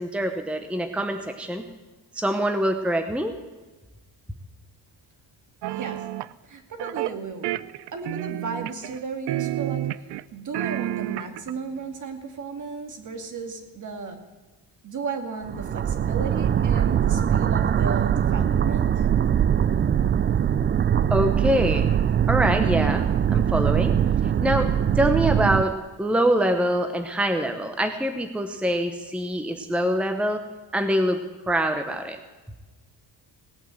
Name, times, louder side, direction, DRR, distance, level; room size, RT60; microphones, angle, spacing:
voice 1, 0.0-1.7 2.1-3.3 21.1-21.9 22.3-23.0 23.3-23.9 24.4-24.7 25.0-25.7 26.0-30.4 30.7-31.2 31.5-32.2, right 1 dB, 5° right, 6 dB, 0.9 m, -24 dB
sound 1, 5.6-6.3 6.8-7.1 7.4-9.0 9.3-10.2 10.5-11.5, right 15 dB, 80° right, 0.6 m, -30 dB
voice 2, 5.7-6.0 6.4-7.5 7.9-9.9 10.3-14.2 14.8-19.1, right 4 dB, 45° right, 5 dB, 2.3 m, -34 dB
sound 2, 15.4-25.6, right 9 dB, 30° right, 0.4 m, -22 dB
18.0 x 9.0 x 7.8 m, 1.2 s
cardioid pair, 135°, 40 cm